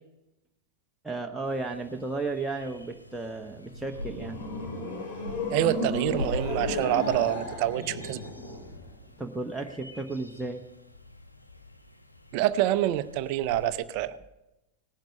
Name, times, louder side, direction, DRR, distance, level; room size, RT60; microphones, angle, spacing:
voice 1, 1.0-4.4 9.2-10.6, right 3 dB, 5° right, 2 dB, 0.9 m, -34 dB
sound 1, 1.4-13.7, left 1 dB, 85° left, 1.1 m, -43 dB
sound 2, 3.6-8.9, left 2 dB, 50° left, 4.7 m, -34 dB
voice 2, 5.5-8.2 12.3-14.2, right 13 dB, 45° right, 14 dB, 0.5 m, -27 dB
18.0 x 10.5 x 5.5 m, 0.96 s
figure-of-eight pair, 90°, 0 cm